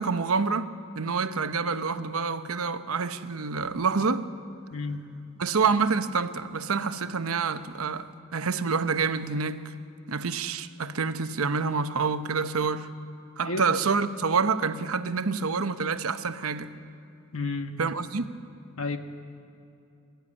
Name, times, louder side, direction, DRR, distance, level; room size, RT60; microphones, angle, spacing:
voice 1, 0.0-4.3 5.4-9.7 10.1-12.9 13.4-16.7 17.8-18.4, right 5 dB, 80° right, 0.9 m, -27 dB
voice 2, 4.7-5.1 13.4-13.6 17.3-17.8 18.8-19.0, left 3 dB, 70° left, 1.3 m, -31 dB
22.0 x 13.0 x 9.8 m
head